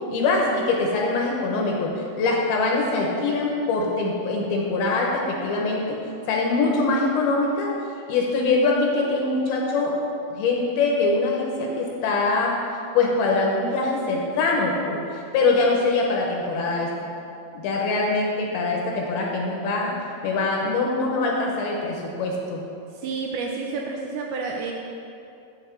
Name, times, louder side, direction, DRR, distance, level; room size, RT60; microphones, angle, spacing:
voice 1, 0.1-6.0 6.3-7.7 8.1-9.9 10.3-12.5 12.9-16.9 17.5-22.6, left 3 dB, 75° left, -1 dB, 2.5 m, -23 dB
voice 2, 22.9-24.7, right 4 dB, 85° right, 0 dB, 2.3 m, -30 dB
8.0 x 8.0 x 4.4 m, 2.6 s
omnidirectional pair, 4.9 m